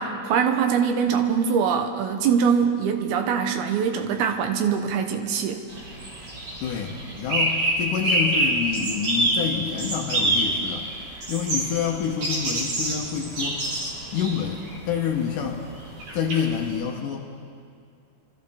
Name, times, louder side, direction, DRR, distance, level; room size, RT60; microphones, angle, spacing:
voice 1, 0.0-5.6, right 7 dB, 80° right, 5 dB, 2.8 m, -23 dB
sound 1, 5.7-16.8, right 1 dB, 50° right, 4.5 m, -27 dB
voice 2, 6.6-10.9 11.3-13.7 14.1-15.6 16.1-17.3, left 7 dB, 70° left, 1 dB, 2.2 m, -28 dB
26.5 x 14.0 x 3.5 m, 2.3 s
omnidirectional pair, 4.6 m